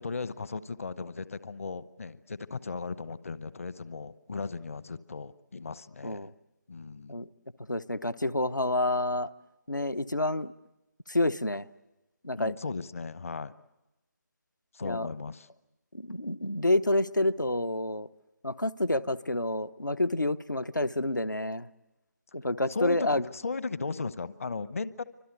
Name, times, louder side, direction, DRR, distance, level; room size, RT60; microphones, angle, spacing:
voice 1, 0.0-6.3 6.7-7.2 12.4-13.5 14.7-15.5 22.7-25.0, left 4 dB, 50° left, 16 dB, 0.9 m, -36 dB
voice 2, 7.7-9.3 9.7-10.5 11.1-11.6 12.2-12.5 14.8-15.1 15.9-18.1 18.4-21.7 22.3-23.2, left 1 dB, 90° left, 12 dB, 0.9 m, -28 dB
28.5 x 25.5 x 8.0 m, 0.99 s
figure-of-eight pair, 155°, 10 cm